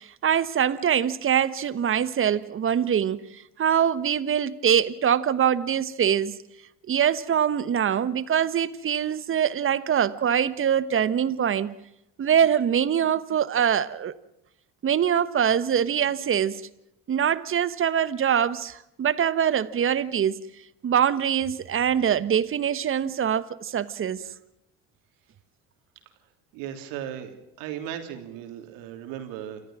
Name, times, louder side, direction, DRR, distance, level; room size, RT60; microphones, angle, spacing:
voice 1, 0.0-6.3 6.9-11.7 12.2-14.1 14.8-16.6 17.1-20.4 20.8-24.2, right 8 dB, 35° right, 1.2 m, -23 dB
voice 2, 26.5-29.6, right 10 dB, 75° right, 3.2 m, -36 dB
28.5 x 14.5 x 7.5 m
supercardioid pair, 80°, 35 cm